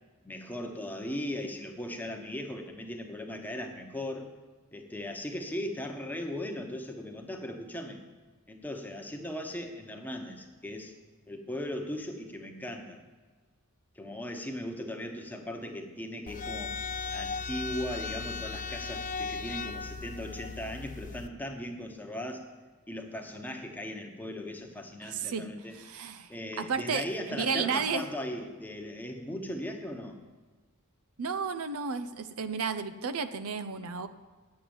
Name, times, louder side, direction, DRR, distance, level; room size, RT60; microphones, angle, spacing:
voice 1, 0.2-4.3 4.7-8.0 8.5-10.9 11.3-13.0 14.0-16.7 17.1-22.4 22.9-25.8 26.3-30.2, left 1 dB, 10° left, 3 dB, 1.0 m, -38 dB
sound 1, 16.3-21.3, left 4 dB, 35° left, 0.4 m, -37 dB
voice 2, 25.0-25.5 25.7-28.1 31.2-34.1, right 5 dB, 80° right, 11 dB, 0.6 m, -33 dB
9.2 x 7.7 x 7.1 m, 1.4 s
head